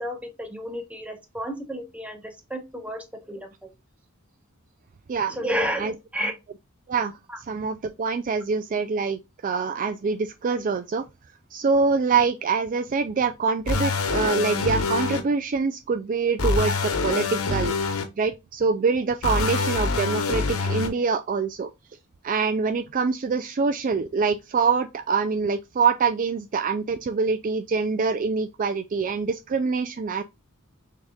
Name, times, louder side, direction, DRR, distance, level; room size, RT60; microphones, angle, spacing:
voice 1, 0.0-3.7 5.4-6.3 7.3-7.4, equal, 5° right, 1.0 m, -31 dB
voice 2, 7.5-11.0 11.5-17.7 18.2-21.7 22.2-30.2, right 5 dB, 40° right, 0.4 m, -25 dB
sound 1, 13.7-15.2 16.4-18.0 19.2-20.9, left 4 dB, 90° left, 1.1 m, -25 dB
6.2 x 3.7 x 2.3 m
head